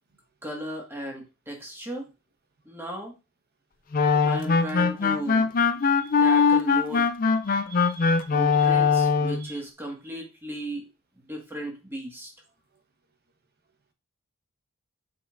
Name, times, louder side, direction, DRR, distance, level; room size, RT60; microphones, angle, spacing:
voice 1, 0.4-2.1 2.6-3.1 4.2-5.5 6.2-7.1 8.3-10.9 11.2-12.3, equal, 10° right, 1.7 m, -35 dB
sound 1, 3.9-9.5, left 5 dB, 40° left, 0.4 m, -22 dB
voice 2, 6.0-6.4 7.5-8.2 8.5-8.7 9.4-9.6, right 6 dB, 45° right, 1.1 m, -47 dB
6.8 x 5.4 x 2.5 m
head